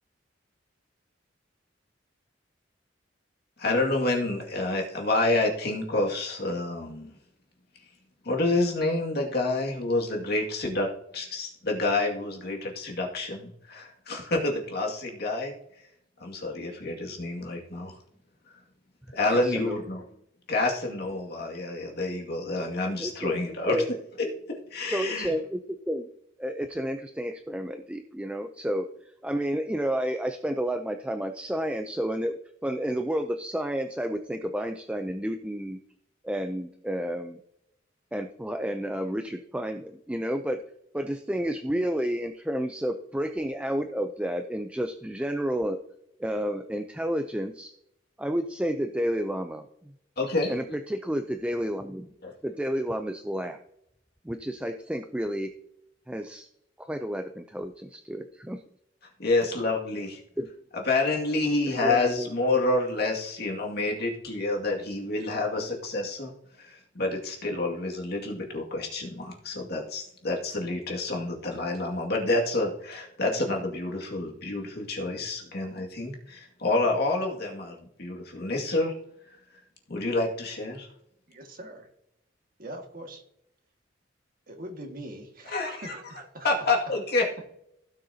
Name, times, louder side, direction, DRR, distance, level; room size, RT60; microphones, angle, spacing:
voice 1, 3.6-7.2 8.2-15.5 16.2-18.0 19.1-20.0 20.5-23.8 24.3-25.3 50.2-50.8 52.2-52.3 59.2-60.2 60.7-66.3 66.6-78.9 79.3-79.4 79.9-80.9 85.4-85.9 86.4-87.3, left 2 dB, 55° left, 0 dB, 2.2 m, -28 dB
voice 2, 19.3-19.8 23.0-23.4 23.7-23.9 24.9-26.1 26.4-35.8 36.2-37.4 38.1-40.6 40.9-45.8 46.2-47.7 48.2-49.9 50.5-52.1 52.4-53.6 54.2-55.5 56.1-56.5 56.8-58.6 60.4-60.5 61.8-62.3, equal, 5° right, 6 dB, 0.5 m, -31 dB
voice 3, 81.3-81.9 82.6-83.2 84.5-86.5, right 1 dB, 50° right, 3 dB, 1.9 m, -42 dB
16.5 x 6.5 x 2.8 m, 0.76 s
head